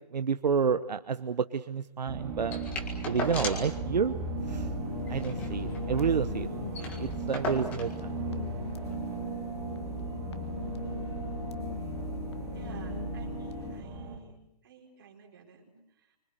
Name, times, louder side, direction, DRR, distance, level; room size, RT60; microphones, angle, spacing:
voice 1, 0.1-2.6 3.0-4.1 4.5-4.7 5.1-6.5 6.7-8.2, right 6 dB, 80° right, 10 dB, 1.1 m, -30 dB
sound 1, 2.1-14.2, right 3 dB, 10° right, 1.8 m, -36 dB
sound 2, 2.5-3.8 4.1-4.2 4.5-4.7 5.1-6.2 6.4-6.5 6.7-8.0 8.9-9.0, left 2 dB, 5° left, 1.8 m, -37 dB
sound 3, 4.4-13.8, left 6 dB, 40° left, 1.4 m, -41 dB
voice 2, 12.5-16.2, right 4 dB, 30° right, 1 dB, 4.6 m, -52 dB
26.5 x 25.0 x 8.0 m, 0.78 s
hypercardioid pair, 180°, 21 cm